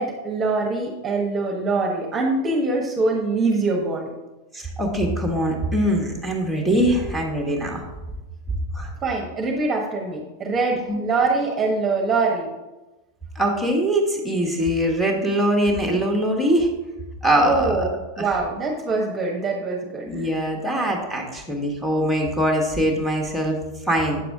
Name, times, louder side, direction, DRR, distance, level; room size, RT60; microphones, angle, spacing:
voice 1, 0.0-4.1 9.0-12.5 17.4-20.3, right 3 dB, 20° right, 0 dB, 1.3 m, -24 dB
voice 2, 4.5-7.8 8.7-8.9 10.9-11.0 13.3-16.7 17.2-17.9 18.2-18.3 20.1-23.6 23.8-24.2, equal, ahead, 0 dB, 1.6 m, -22 dB
8.7 x 6.7 x 3.6 m, 1.1 s
figure-of-eight pair, 90°, 0 cm